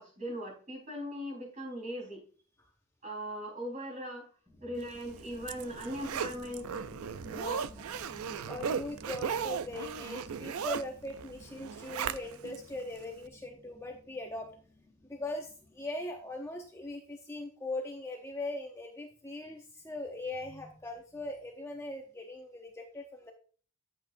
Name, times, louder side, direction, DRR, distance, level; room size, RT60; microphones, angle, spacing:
voice 1, 0.0-2.2 3.0-4.3 4.6-6.7 7.2-8.0, equal, 35° right, -1 dB, 4.1 m, -40 dB
sound 1, 4.5-16.7, left 2 dB, 10° right, 2.3 m, -55 dB
Zipper (clothing), 5.0-12.6 13.0-13.1, right 7 dB, 75° right, 0.4 m, -37 dB
voice 2, 7.3-7.6 8.4-14.5 15.1-23.3, left 2 dB, 10° left, 1 dB, 0.8 m, -40 dB
11.0 x 7.9 x 2.6 m, 0.42 s
head